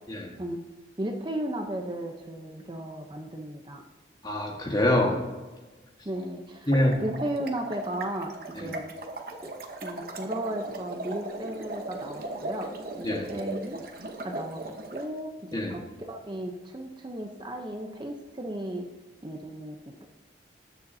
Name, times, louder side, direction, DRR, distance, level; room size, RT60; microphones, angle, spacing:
voice 1, 1.0-3.8 6.0-6.7 7.0-8.9 9.4-9.5 9.8-13.8 14.2-14.6 14.9-18.9 19.2-19.8 20.0-20.1, right 1 dB, 25° right, 3 dB, 0.7 m, -35 dB
voice 2, 4.2-5.2 6.7-7.0 8.5-8.7 13.0-13.3 15.5-15.7, left 1 dB, 20° left, 1 dB, 1.5 m, -25 dB
Bubbles Descend, 6.5-15.0, right 2 dB, 50° right, 1.0 m, -38 dB
20.0 x 6.8 x 2.8 m, 1.2 s
head